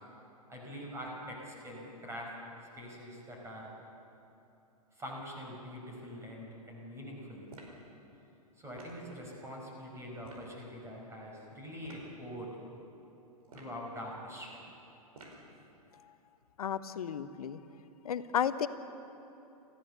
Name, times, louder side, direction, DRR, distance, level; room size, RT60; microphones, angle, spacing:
voice 1, 0.5-2.3 2.8-3.7 5.0-7.5 8.6-12.5 13.5-14.6, equal, 15° right, -2 dB, 5.3 m, -44 dB
sound 1, 7.5-7.8 8.8-9.0 10.2-10.5 11.8-12.1 13.4-13.8 15.1-15.5, right 2 dB, 70° right, 4.9 m, -52 dB
voice 2, 16.6-17.6 18.0-18.7, left 8 dB, 70° left, 12 dB, 1.1 m, -33 dB
28.5 x 15.0 x 6.9 m, 2.9 s
hypercardioid pair, 110°, 19 cm